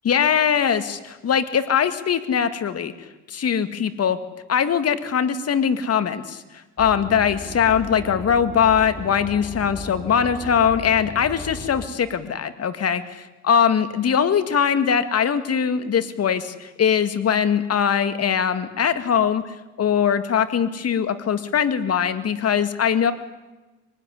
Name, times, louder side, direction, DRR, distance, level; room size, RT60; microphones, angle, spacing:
voice 1, 0.1-2.9 3.3-4.2 4.5-6.4 6.8-23.1, left 7 dB, 55° left, 11 dB, 2.1 m, -21 dB
sound 1, 6.8-11.9, left 2 dB, 20° left, 3.6 m, -36 dB
24.0 x 19.0 x 10.0 m, 1.1 s
cardioid pair, 90°, 30 cm